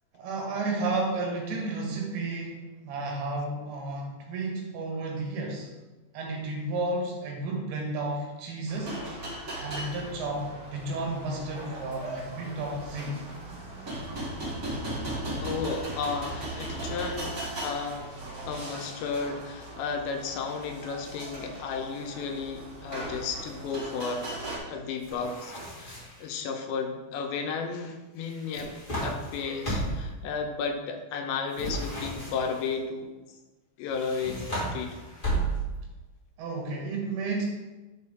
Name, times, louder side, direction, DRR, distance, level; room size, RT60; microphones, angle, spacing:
voice 1, 0.1-5.7 6.1-9.0 9.6-13.2 36.4-37.5, right 2 dB, 85° right, -1 dB, 3.9 m, -32 dB
sound 1, 8.7-24.6, right 1 dB, 40° right, 1.2 m, -38 dB
voice 2, 15.4-18.1 18.5-24.3 24.7-28.7 29.0-33.1 33.8-35.0, left 5 dB, 85° left, 4 dB, 3.1 m, -33 dB
sound 2, 25.0-26.3 28.3-30.1 31.5-32.7 33.9-35.9, right 1 dB, 55° left, 0.5 m, -33 dB
11.0 x 4.6 x 3.6 m, 1.1 s
omnidirectional pair, 5.0 m